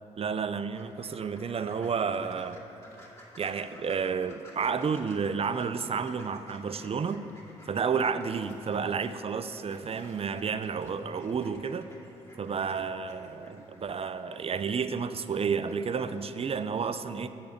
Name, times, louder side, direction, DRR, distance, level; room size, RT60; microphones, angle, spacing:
voice 1, 0.2-2.6 3.4-7.2 7.7-11.9 12.4-17.3, right 6 dB, 35° right, 11 dB, 0.5 m, -31 dB
sound 1, 0.7-16.8, left 1 dB, 20° left, 2.4 m, -54 dB
7.6 x 6.9 x 6.7 m, 3.0 s
hypercardioid pair, 40°, 17 cm